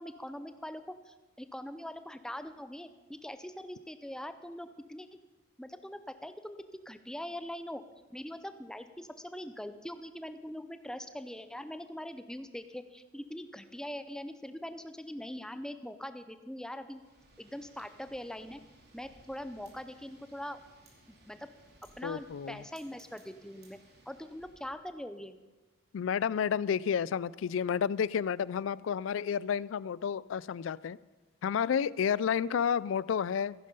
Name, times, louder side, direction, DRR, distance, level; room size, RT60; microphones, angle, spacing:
voice 1, 0.0-5.1 5.6-7.8 8.1-17.0 17.4-18.6 18.9-20.6 21.3-21.4 22.0-23.8 24.1-25.4, left 1 dB, 5° left, 10 dB, 0.6 m, -42 dB
Wind, 16.8-24.9, right 1 dB, 55° right, 2.7 m, -61 dB
voice 2, 22.0-22.6 25.9-31.0 31.4-33.5, left 7 dB, 70° left, 21 dB, 0.3 m, -31 dB
15.0 x 10.5 x 5.4 m, 1.2 s
head